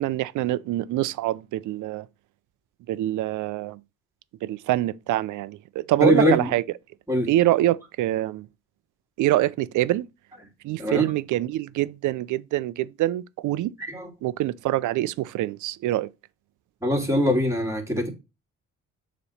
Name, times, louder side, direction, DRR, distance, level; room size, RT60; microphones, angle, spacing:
voice 1, 0.0-2.1 2.9-3.8 4.4-6.6 7.3-8.5 9.2-10.1 10.6-13.7 14.2-16.1, right 15 dB, 80° right, 0.5 m, -25 dB
voice 2, 6.0-6.5 7.1-7.3 10.8-11.1 13.9-14.1 16.8-18.1, equal, 10° right, 2.5 m, -22 dB
6.9 x 3.1 x 5.5 m
cardioid pair, 90°, 30 cm